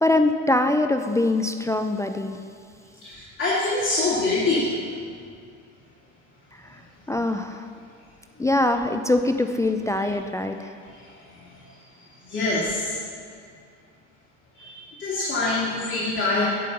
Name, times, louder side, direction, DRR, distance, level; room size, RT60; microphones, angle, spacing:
voice 1, 0.0-2.4 7.1-7.6 8.4-10.7, left 2 dB, 10° left, 6 dB, 0.4 m, -23 dB
voice 2, 3.0-4.7 12.3-13.0 14.5-16.5, left 2 dB, 30° left, -7 dB, 2.6 m, -25 dB
11.5 x 5.5 x 6.9 m, 2.3 s
hypercardioid pair, 80°, 38 cm